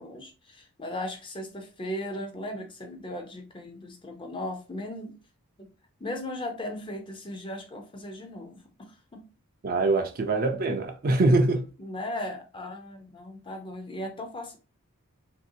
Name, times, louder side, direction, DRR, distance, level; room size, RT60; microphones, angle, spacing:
voice 1, 0.0-5.2 5.6-5.7 6.0-8.6 8.9-9.2 11.8-14.6, left 1 dB, 20° left, 0.5 m, -37 dB
voice 2, 9.6-11.7, right 2 dB, 40° right, 0.4 m, -23 dB
3.2 x 2.7 x 2.6 m
head